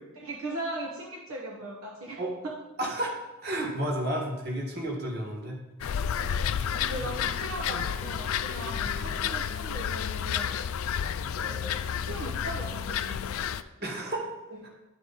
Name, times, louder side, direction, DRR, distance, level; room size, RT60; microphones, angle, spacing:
voice 1, 0.2-2.6 5.0-5.1 6.8-10.6 11.3-13.4 14.5-14.8, right 1 dB, 70° right, -1 dB, 1.0 m, -39 dB
voice 2, 2.8-3.1 3.4-5.9 7.0-7.1 8.8-8.9 13.8-14.3, right 1 dB, 45° right, -1 dB, 1.7 m, -32 dB
sound 1, 5.8-13.6, left 8 dB, 70° left, 0.3 m, -31 dB
11.0 x 4.7 x 4.1 m, 1.0 s
head